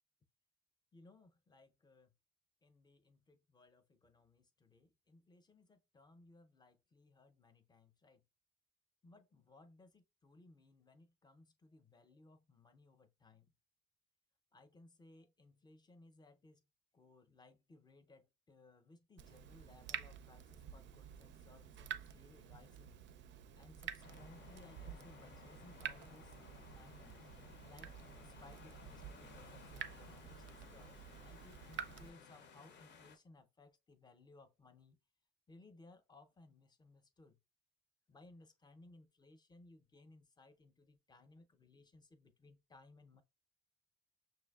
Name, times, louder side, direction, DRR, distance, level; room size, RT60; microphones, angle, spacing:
voice 1, 0.9-2.1 2.6-8.2 9.0-13.5 14.5-16.6 16.9-23.0 23.5-27.2 27.6-35.0 35.5-37.4 38.1-43.2, left 2 dB, 20° left, 0.6 m, -63 dB
Water tap faucet / Drip, 19.2-32.1, right 9 dB, 70° right, 0.4 m, -50 dB
sound 1, 24.0-33.2, left 5 dB, 60° left, 0.6 m, -58 dB
5.9 x 2.5 x 2.3 m
cardioid pair, 90°, 20 cm